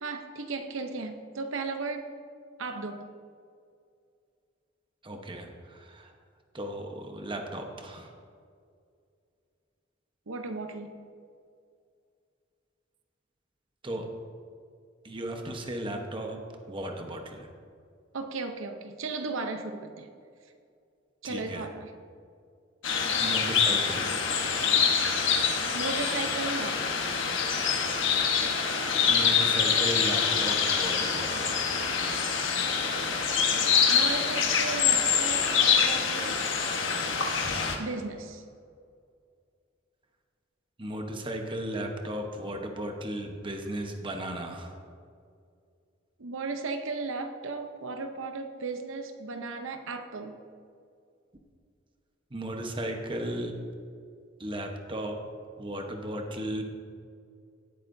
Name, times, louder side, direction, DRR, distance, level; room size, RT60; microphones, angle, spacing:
voice 1, 0.0-2.1 2.6-3.1 10.3-11.0 18.1-20.1 21.2-21.9 25.7-26.9 33.8-36.4 37.8-38.4 46.2-50.4, right 3 dB, 80° right, 6 dB, 0.7 m, -35 dB
voice 2, 5.0-6.1 6.5-8.1 13.8-14.1 15.0-16.4 16.7-17.5 21.2-21.7 23.1-24.2 29.0-31.6 40.8-44.7 52.3-53.5 54.4-55.2 55.6-56.6, right 1 dB, 25° right, 3 dB, 1.0 m, -35 dB
sound 1, 22.8-37.8, left 6 dB, 70° left, 1.2 m, -25 dB
17.5 x 8.4 x 2.7 m, 2.3 s
head